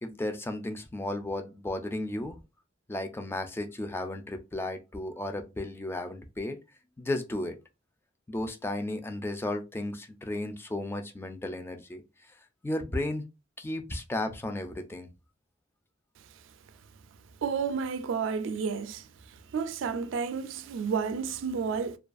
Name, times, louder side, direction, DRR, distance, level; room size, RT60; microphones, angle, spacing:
voice 1, 0.0-2.4 2.9-6.6 7.0-7.6 8.3-12.0 12.6-13.2 13.6-15.1, left 1 dB, 10° left, 0.3 m, -34 dB
voice 2, 17.4-19.1 19.5-22.0, right 6 dB, 75° right, 0.3 m, -31 dB
2.3 x 2.3 x 2.4 m
head